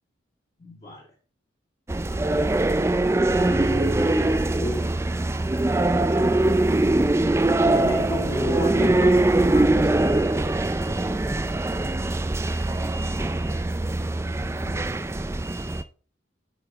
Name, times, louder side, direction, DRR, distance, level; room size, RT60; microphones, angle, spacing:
voice 1, 0.6-1.2 2.0-5.0 7.6-10.3 14.5-15.0, left 1 dB, 35° left, -3 dB, 1.9 m, -34 dB
sound 1, 1.9-15.8, right 2 dB, 15° right, 0.4 m, -22 dB
9.1 x 5.3 x 3.5 m, 0.39 s
head